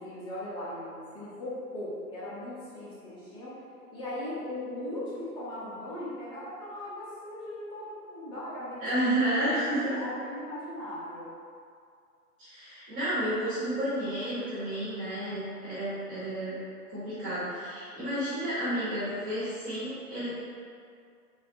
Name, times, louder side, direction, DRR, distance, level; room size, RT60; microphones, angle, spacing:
voice 1, 0.0-3.6 3.9-8.9 9.3-11.3, left 1 dB, 10° left, -10 dB, 0.7 m, -38 dB
voice 2, 8.8-10.0 12.4-16.6 16.9-20.3, right 1 dB, 15° right, -12 dB, 1.0 m, -31 dB
3.9 x 2.0 x 4.3 m, 2.3 s
hypercardioid pair, 135°, 47 cm